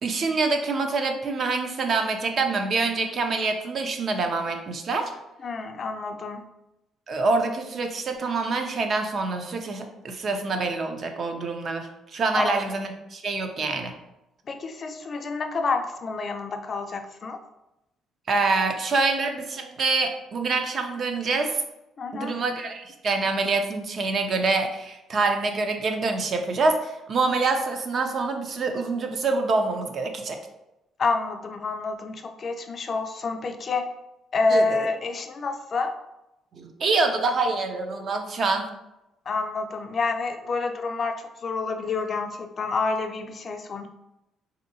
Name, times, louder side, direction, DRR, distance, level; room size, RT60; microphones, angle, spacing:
voice 1, 0.0-5.1 7.1-13.9 18.3-21.5 22.1-30.4 34.5-34.9 36.5-38.7, right 3 dB, 40° right, 5 dB, 0.4 m, -26 dB
voice 2, 5.4-6.4 12.3-12.5 14.5-17.4 22.0-22.3 31.0-33.8 34.3-35.9 39.3-43.9, left 4 dB, 35° left, 6 dB, 0.3 m, -28 dB
3.3 x 2.7 x 2.6 m, 0.91 s
cardioid pair, 145°, 0 cm